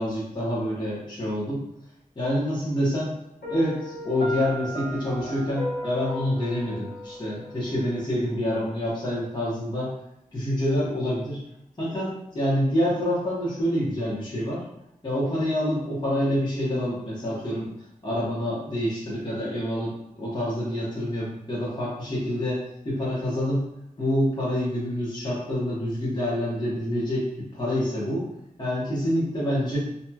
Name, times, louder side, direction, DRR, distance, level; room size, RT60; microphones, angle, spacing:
voice 1, 0.0-1.6 2.2-3.1 3.5-9.9 10.3-11.4 11.8-14.6 15.0-17.7 18.0-23.6 24.0-28.3 28.6-29.8, equal, 30° left, -9 dB, 1.0 m, -27 dB
Piano, 3.4-8.4, equal, 85° left, 1.2 m, -36 dB
3.0 x 2.7 x 2.3 m, 0.80 s
wide cardioid pair, 90°, 15 cm